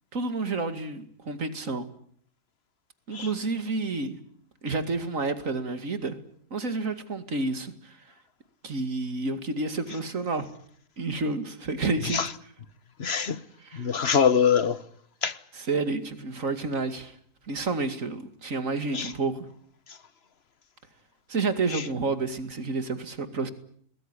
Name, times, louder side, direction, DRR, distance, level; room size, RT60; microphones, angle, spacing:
voice 1, 0.1-1.9 3.1-4.2 4.6-6.2 6.5-8.1 8.6-10.5 11.0-12.2 13.6-13.9 15.5-17.2 17.4-19.5 21.3-23.5, right 3 dB, 70° right, 2.7 m, -30 dB
voice 2, 13.0-13.4 13.7-14.8 15.2-15.4 18.9-19.1 21.7-21.8, left 7 dB, 50° left, 1.4 m, -24 dB
23.0 x 20.0 x 9.9 m
omnidirectional pair, 1.4 m